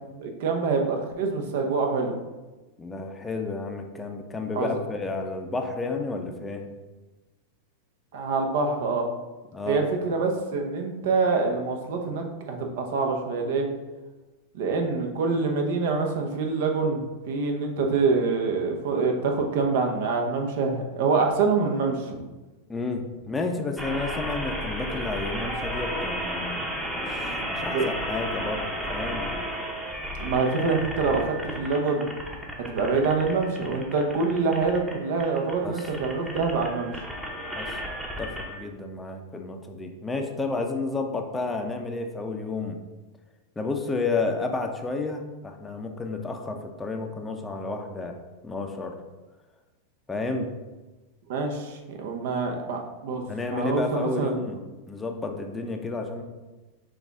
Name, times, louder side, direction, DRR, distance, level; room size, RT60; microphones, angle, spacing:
voice 1, 0.1-2.2 4.5-4.7 8.1-9.1 9.7-13.7 14.5-22.2 27.7-27.8 30.2-32.0 32.7-36.9 51.3-53.2 53.5-54.3, right 4 dB, 65° right, 3 dB, 0.8 m, -25 dB
voice 2, 2.8-6.7 9.5-9.8 22.7-29.3 35.6-35.9 37.6-37.8 38.2-42.8 43.6-49.0 50.1-50.5 53.3-54.6 54.9-56.2, left 3 dB, 15° left, 3 dB, 0.5 m, -31 dB
sound 1, 23.8-38.6, equal, 10° right, 0.8 m, -33 dB
6.3 x 2.4 x 3.5 m, 1.2 s
hypercardioid pair, 115°, 0 cm